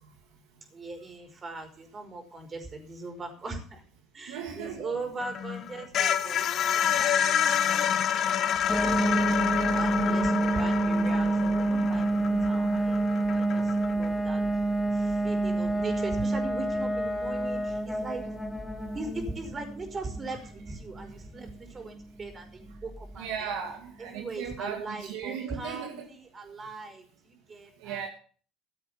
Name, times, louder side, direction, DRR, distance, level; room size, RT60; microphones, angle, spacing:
voice 1, 0.7-3.8 4.1-7.8 8.1-9.2 9.7-13.0 13.3-14.4 14.9-18.2 18.9-23.5 24.0-28.0, right 3 dB, 35° right, 5.1 m, -40 dB
voice 2, 4.3-5.0 9.2-9.3 23.2-26.1 27.8-28.1, right 7 dB, 80° right, 2.1 m, -36 dB
sound 1, 5.2-14.1, left 9 dB, 55° left, 1.1 m, -28 dB
sound 2, 8.7-23.3, right 2 dB, 5° left, 2.4 m, -28 dB
15.5 x 7.6 x 7.0 m
hypercardioid pair, 75°, 0 cm